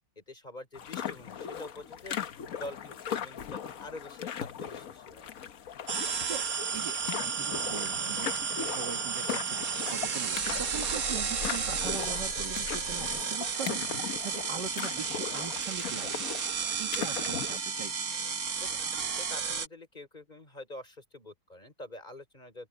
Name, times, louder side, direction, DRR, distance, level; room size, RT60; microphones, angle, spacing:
voice 1, 0.2-2.3 2.6-5.3 16.9-17.2 18.6-22.7, left 1 dB, 20° left, 4.5 m, -46 dB
sound 1, 0.7-17.6, left 8 dB, 55° left, 1.2 m, -39 dB
sound 2, 5.9-19.7, right 6 dB, 50° right, 1.7 m, -33 dB
voice 2, 7.2-8.3 8.6-16.2 16.8-18.0, right 6 dB, 65° right, 2.4 m, -41 dB
sound 3, 7.3-13.2, left 2 dB, 75° left, 8.8 m, -45 dB
open air
omnidirectional pair, 2.0 m